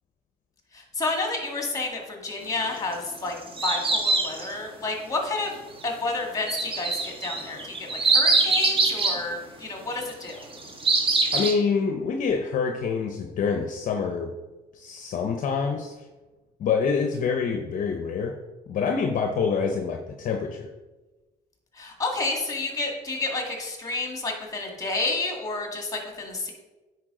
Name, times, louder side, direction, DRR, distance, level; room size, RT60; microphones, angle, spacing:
voice 1, 0.7-5.6 5.8-10.4 21.8-26.5, left 3 dB, 20° left, 1 dB, 1.9 m, -30 dB
sound 1, 2.9-4.5 6.5-9.2 10.3-11.5, right 3 dB, 30° right, 1.5 m, -23 dB
voice 2, 11.3-14.3 14.7-16.1 16.6-18.4 18.7-20.7, left 5 dB, 50° left, 4 dB, 0.7 m, -26 dB
9.7 x 4.7 x 3.7 m, 1.2 s
cardioid pair, 110°, 17 cm